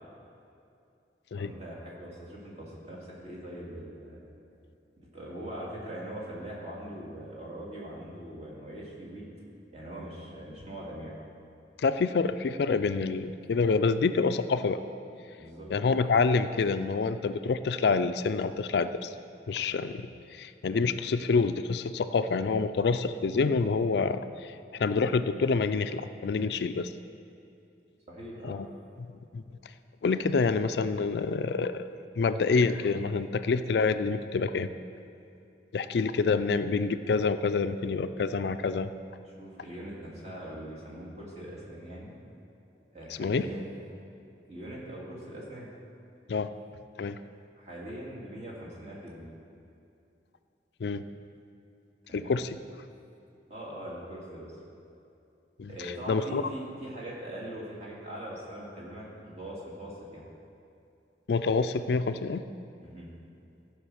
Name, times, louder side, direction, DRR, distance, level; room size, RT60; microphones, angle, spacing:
voice 1, 1.4-4.2 5.1-9.3 9.7-11.1 15.4-15.7 28.1-28.6 39.3-42.1 42.9-43.7 44.5-45.7 47.6-49.3 52.1-52.4 53.5-54.5 55.6-60.3 62.8-63.1, right 1 dB, 40° right, -5 dB, 2.5 m, -41 dB
voice 2, 11.8-14.8 15.7-19.1 19.5-26.9 28.4-28.7 29.0-29.1 29.3-29.4 30.0-31.9 32.2-34.7 35.7-38.9 43.2-43.5 46.3-46.5 47.0-47.2 50.8-51.0 52.1-52.6 55.6-56.4 61.3-62.4, left 4 dB, 70° left, 11 dB, 0.4 m, -27 dB
15.0 x 5.1 x 6.3 m, 2.7 s
head